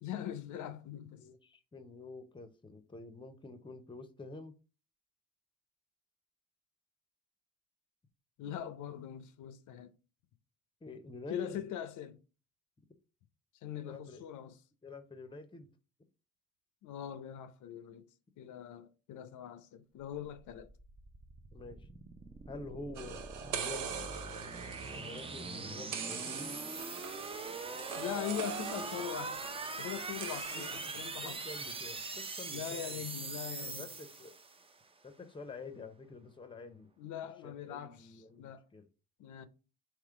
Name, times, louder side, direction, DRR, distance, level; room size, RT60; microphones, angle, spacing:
voice 1, 0.0-1.2 8.4-9.9 11.3-12.2 13.6-14.6 16.8-18.0 18.4-20.7 27.9-29.4 29.8-31.4 32.5-33.9 37.0-38.1 38.4-38.6 39.2-39.5, left 10 dB, 80° left, 0.6 m, -41 dB
voice 2, 1.2-4.5 10.8-11.6 13.8-14.2 14.8-15.7 21.5-21.9 22.5-24.2 24.9-26.6 30.5-33.1 33.6-34.4 35.0-36.9 37.2-38.8, left 3 dB, 15° left, 0.7 m, -48 dB
sound 1, 20.4-34.7, right 3 dB, 20° right, 0.5 m, -42 dB
sound 2, 22.9-31.7, right 7 dB, 80° right, 0.7 m, -44 dB
3.6 x 3.0 x 4.7 m
cardioid pair, 90°, 30 cm